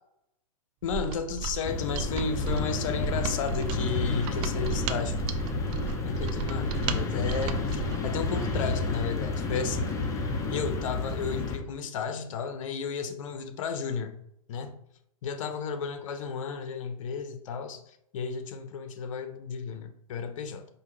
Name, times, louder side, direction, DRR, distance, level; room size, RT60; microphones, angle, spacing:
voice 1, 0.8-5.2 6.0-10.0 10.5-14.1 14.5-14.7 15.2-20.7, left 6 dB, 60° left, 8 dB, 0.7 m, -33 dB
Mechanisms, 0.8-8.0, right 7 dB, 30° right, 0.4 m, -35 dB
sound 1, 1.6-11.6, left 3 dB, 15° left, 0.6 m, -30 dB
4.9 x 2.6 x 3.1 m, 0.76 s
hypercardioid pair, 120°, 18 cm